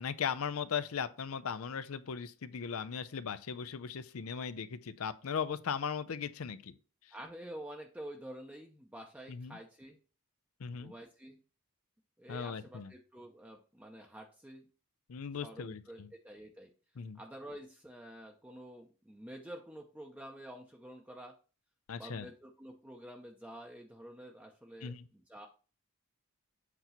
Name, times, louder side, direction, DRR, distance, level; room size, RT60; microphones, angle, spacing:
voice 1, 0.0-6.7 9.3-9.6 10.6-10.9 12.3-12.9 15.1-16.1 17.0-17.2 21.9-22.3 24.8-25.1, left 6 dB, 70° left, 0.5 m, -38 dB
voice 2, 7.1-10.0 10.7-11.4 12.2-14.7 15.4-16.7 17.1-21.3 22.0-25.5, right 1 dB, 5° right, 0.7 m, -49 dB
8.1 x 3.0 x 5.6 m
head